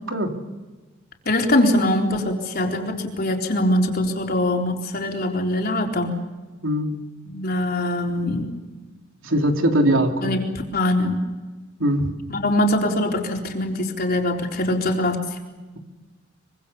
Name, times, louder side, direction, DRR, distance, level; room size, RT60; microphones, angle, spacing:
voice 1, 1.3-6.2 7.3-8.5 10.2-10.5 10.7-11.2 12.3-15.2, left 1 dB, 50° left, 1 dB, 4.0 m, -22 dB
voice 2, 6.6-7.0 9.2-10.4 11.8-12.1, right 1 dB, 85° right, 3 dB, 3.4 m, -21 dB
24.5 x 24.5 x 7.0 m, 1.2 s
head